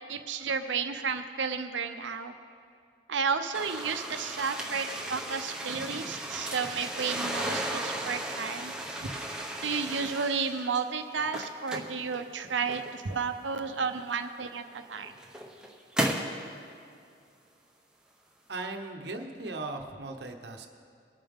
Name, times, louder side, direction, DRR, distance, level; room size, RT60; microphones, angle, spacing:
voice 1, 0.1-2.3 3.1-8.7 9.6-15.1, right 5 dB, 90° right, 8 dB, 0.8 m, -32 dB
sound 1, 3.5-10.8 11.2-13.2 14.1-14.2 14.9-16.4, right 1 dB, 5° right, 0.9 m, -35 dB
voice 2, 18.5-20.7, right 2 dB, 65° right, 4 dB, 1.0 m, -38 dB
21.0 x 8.8 x 3.6 m, 2.4 s
head